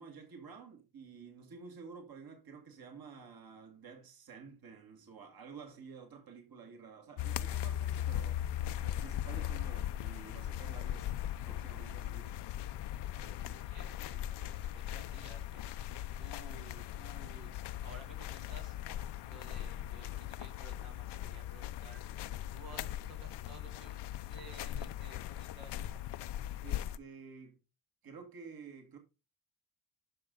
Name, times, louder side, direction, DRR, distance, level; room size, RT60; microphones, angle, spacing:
voice 1, 0.0-8.4 8.8-11.2 11.5-12.3 13.1-13.6 26.6-27.6 28.0-29.0, right 5 dB, 55° right, 2.1 m, -51 dB
sound 1, 7.2-27.0, left 11 dB, 65° left, 0.7 m, -39 dB
voice 2, 13.2-15.7 16.2-17.5 17.8-18.8 19.2-22.0 22.5-26.0, right 2 dB, 80° right, 2.6 m, -55 dB
11.5 x 5.6 x 3.8 m
cardioid pair, 75°, 44 cm